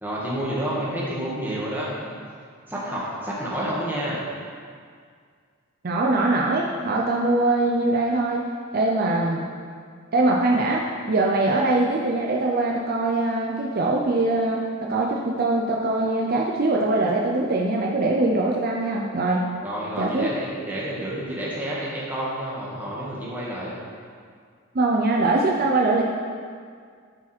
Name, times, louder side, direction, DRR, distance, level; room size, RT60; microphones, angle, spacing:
voice 1, 0.0-2.1 2.7-4.2 19.6-23.8, right 1 dB, 10° right, -6 dB, 1.6 m, -29 dB
voice 2, 5.8-8.4 8.7-9.5 10.1-19.5 20.0-20.3 24.7-26.0, right 2 dB, 45° right, -1 dB, 0.6 m, -22 dB
11.5 x 4.8 x 4.3 m, 2.1 s
head